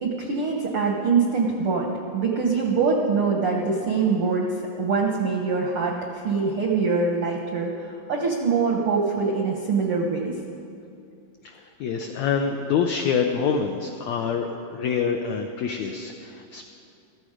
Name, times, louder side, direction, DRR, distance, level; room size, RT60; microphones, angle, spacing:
voice 1, 0.0-4.5 4.8-10.3, right 4 dB, 75° right, 0 dB, 1.2 m, -24 dB
voice 2, 11.4-16.7, left 6 dB, 85° left, 4 dB, 1.5 m, -26 dB
16.0 x 13.5 x 5.0 m, 2.5 s
omnidirectional pair, 4.0 m